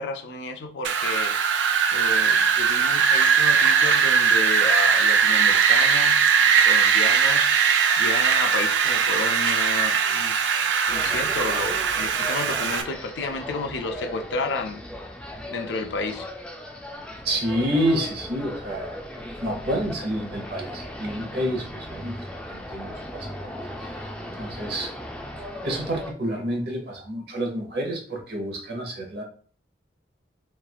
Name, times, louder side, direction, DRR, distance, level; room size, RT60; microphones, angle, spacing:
voice 1, 0.0-1.4 1.9-7.5 8.0-10.4 10.9-14.8 15.5-16.3, left 4 dB, 75° left, 0.4 m, -31 dB
Wind, 0.8-12.8, right 6 dB, 85° right, 0.4 m, -20 dB
sound 1, 10.9-26.1, equal, 5° left, 0.3 m, -37 dB
voice 2, 17.2-19.0 19.4-23.3 23.8-23.9 24.4-24.9 25.6-29.2, equal, 60° right, 0.9 m, -28 dB
3.0 x 2.4 x 2.3 m
head